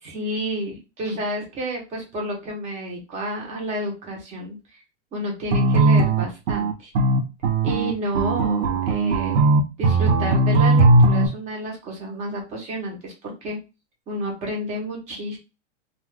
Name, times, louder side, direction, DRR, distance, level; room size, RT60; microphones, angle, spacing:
voice 1, 0.0-4.6 5.1-6.9 7.6-9.4 9.8-13.6 14.1-15.4, right 1 dB, 20° right, 0 dB, 0.8 m, -30 dB
sound 1, 5.5-11.3, right 2 dB, 85° right, 0.7 m, -18 dB
2.4 x 2.3 x 3.3 m, 0.28 s
hypercardioid pair, 150°, 37 cm